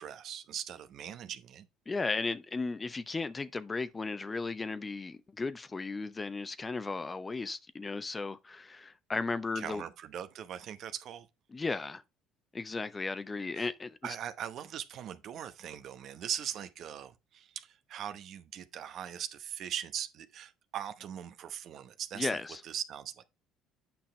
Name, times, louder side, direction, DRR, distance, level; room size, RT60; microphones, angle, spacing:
voice 1, 0.0-1.7 9.5-11.3 13.6-13.7 14.0-22.4 22.6-23.2, right 9 dB, 60° right, 0.9 m, -40 dB
voice 2, 1.9-9.8 11.5-12.0 12.5-14.0 22.1-22.6, left 3 dB, 25° left, 0.7 m, -35 dB
8.8 x 5.8 x 3.3 m
hypercardioid pair, 70°, 0 cm